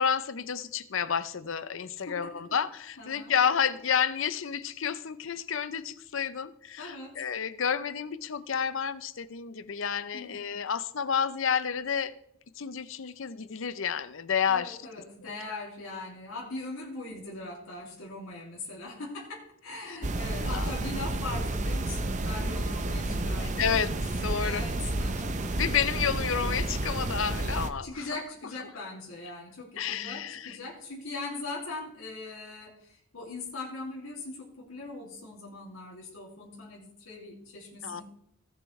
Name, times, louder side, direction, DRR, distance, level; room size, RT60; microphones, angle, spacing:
voice 1, 0.0-12.1 12.6-14.8 15.2-15.6 20.4-20.7 23.4-23.9 24.2-24.6 25.6-27.9 29.8-30.6 37.8-38.0, left 7 dB, 65° left, 14 dB, 0.6 m, -30 dB
voice 2, 3.0-3.3 6.8-7.2 10.1-10.6 14.5-23.8 24.4-25.4 27.8-38.0, left 2 dB, 80° left, -4 dB, 2.5 m, -40 dB
sound 1, 20.0-27.7, right 2 dB, 35° right, 0.6 m, -31 dB
17.0 x 7.1 x 3.2 m, 0.76 s
head